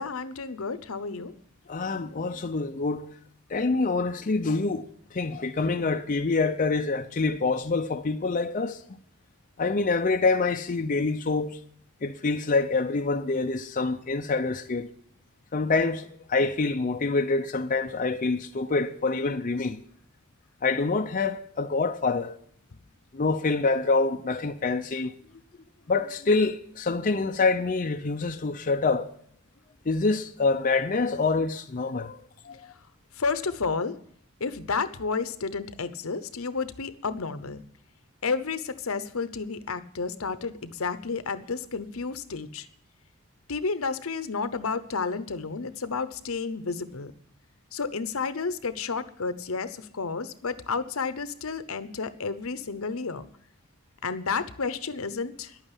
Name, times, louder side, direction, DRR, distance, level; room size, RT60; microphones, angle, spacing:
voice 1, 0.0-1.3 33.2-34.0 34.4-37.6 38.2-42.7 43.5-47.1 47.7-53.3 54.0-55.6, left 4 dB, 75° left, 0.9 m, -31 dB
voice 2, 1.7-3.1 3.5-9.0 9.6-11.6 12.0-14.9 15.5-19.8 20.6-22.4 23.1-25.1 25.9-29.1 29.9-32.7, left 3 dB, 40° left, 0.6 m, -26 dB
11.5 x 9.0 x 9.9 m
head